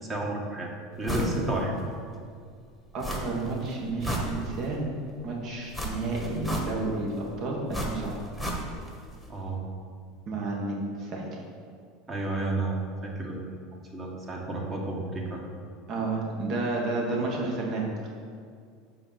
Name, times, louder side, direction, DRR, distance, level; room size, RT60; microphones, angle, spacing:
voice 1, 0.1-0.7 1.0-1.7 9.3-9.6 12.1-13.4 13.9-15.4, right 2 dB, 30° right, -1 dB, 1.6 m, -31 dB
sound 1, 1.1-1.4 1.8-1.9 3.0-3.5 3.8-4.8 5.7-7.0 7.7-9.0 9.2-9.3, right 1 dB, ahead, 1.4 m, -32 dB
voice 2, 2.9-4.8 5.2-8.2 8.6-8.7 10.3-11.4 15.9-18.1, right 2 dB, 55° right, -1 dB, 1.8 m, -31 dB
6.5 x 4.8 x 6.0 m, 2.2 s
supercardioid pair, 105°, 0 cm